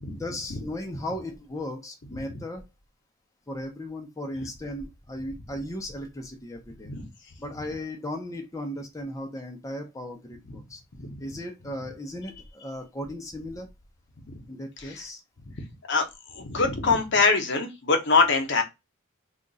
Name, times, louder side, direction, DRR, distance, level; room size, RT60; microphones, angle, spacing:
voice 1, 0.1-2.7 3.5-6.9 7.4-10.8 11.2-13.7 14.5-15.2, left 1 dB, 15° left, 0.6 m, -36 dB
voice 2, 16.3-18.6, left 4 dB, 60° left, 0.9 m, -23 dB
2.9 x 2.4 x 3.9 m
head